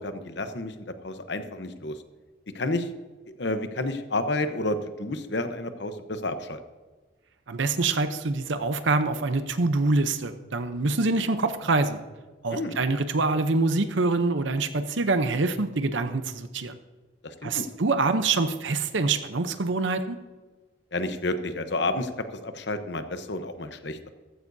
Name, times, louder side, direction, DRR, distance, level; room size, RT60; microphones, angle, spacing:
voice 1, 0.0-2.0 2.5-2.9 3.4-6.6 12.5-12.8 17.2-17.7 20.9-24.0, left 2 dB, 60° left, 9 dB, 0.9 m, -30 dB
voice 2, 7.5-12.0 12.4-16.7 17.4-20.2, right 3 dB, 70° right, 9 dB, 0.7 m, -25 dB
14.5 x 14.5 x 2.7 m, 1.3 s
head